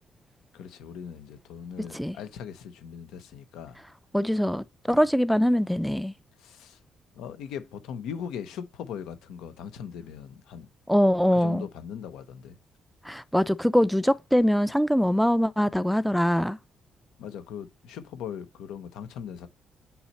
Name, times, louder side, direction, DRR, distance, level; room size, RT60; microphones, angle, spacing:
voice 1, 0.5-3.8 4.9-5.0 6.4-6.8 7.1-10.7 11.3-12.6 17.2-19.5, left 8 dB, 90° left, 0.9 m, -39 dB
voice 2, 1.8-2.2 4.1-6.1 10.9-11.7 13.0-16.6, equal, ahead, 0.4 m, -23 dB
5.6 x 4.3 x 4.1 m
cardioid pair, 90°, 0 cm